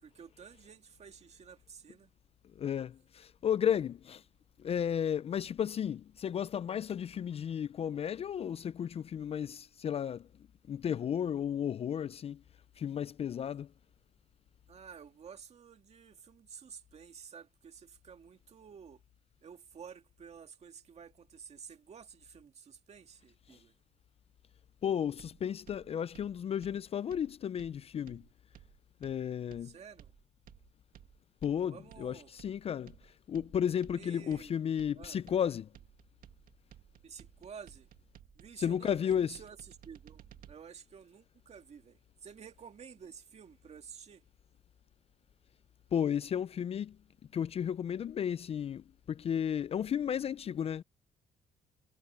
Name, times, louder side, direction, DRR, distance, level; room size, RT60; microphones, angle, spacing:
voice 1, 0.0-2.1 14.7-19.0 19.4-23.7 29.6-30.1 31.7-32.3 33.9-34.6 34.9-35.2 37.0-37.9 38.4-44.2, right 7 dB, 45° right, 2.2 m, -51 dB
voice 2, 2.6-4.2 4.6-10.3 10.7-12.4 12.8-13.7 23.5-23.6 24.8-28.2 29.0-29.7 31.4-32.9 33.3-35.7 38.6-39.4 45.9-47.0 47.3-50.8, left 8 dB, 40° left, 0.4 m, -33 dB
sound 1, 25.2-40.5, right 11 dB, 65° right, 1.8 m, -57 dB
cardioid pair, 110°, 15 cm